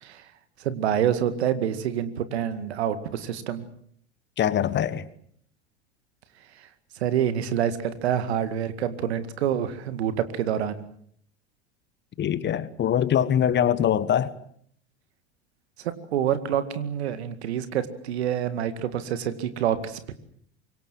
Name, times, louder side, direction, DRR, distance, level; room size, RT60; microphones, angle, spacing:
voice 1, 0.6-3.6 7.0-10.8 15.8-20.1, right 9 dB, 70° right, 2.2 m, -27 dB
voice 2, 4.4-5.1 12.2-14.3, left 9 dB, 30° left, 1.4 m, -23 dB
25.5 x 23.0 x 7.7 m
figure-of-eight pair, 80°, 34 cm